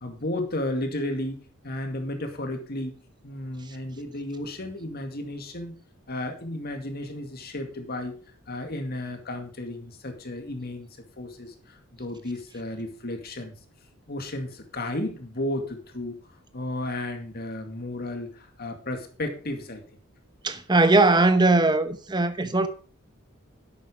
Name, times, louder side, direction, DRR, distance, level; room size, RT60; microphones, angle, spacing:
voice 1, 0.0-5.7 6.1-8.2 8.5-10.9 11.2-13.5 14.1-16.1 16.5-19.8, left 1 dB, 45° left, 2.2 m, -33 dB
voice 2, 20.4-22.7, right 2 dB, 20° right, 0.9 m, -20 dB
11.0 x 8.5 x 5.0 m
head